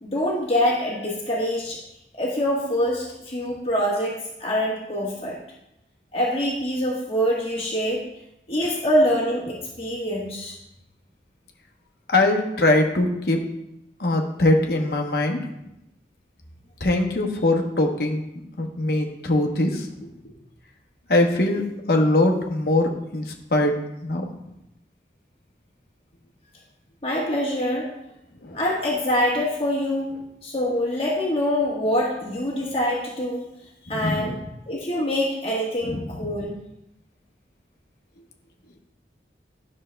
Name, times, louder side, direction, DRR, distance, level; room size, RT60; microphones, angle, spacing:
voice 1, 0.0-1.8 2.2-5.4 6.1-8.0 8.5-10.5 27.0-27.9 28.5-30.1 30.4-33.4 33.9-34.3 34.7-36.6, equal, 35° left, -4 dB, 1.3 m, -25 dB
voice 2, 12.1-13.4 14.0-15.5 16.8-18.2 18.6-20.3 21.1-24.3 28.4-28.6 33.9-34.4 35.9-36.3, left 2 dB, 60° left, 2 dB, 1.0 m, -22 dB
11.0 x 6.4 x 2.2 m, 0.84 s
head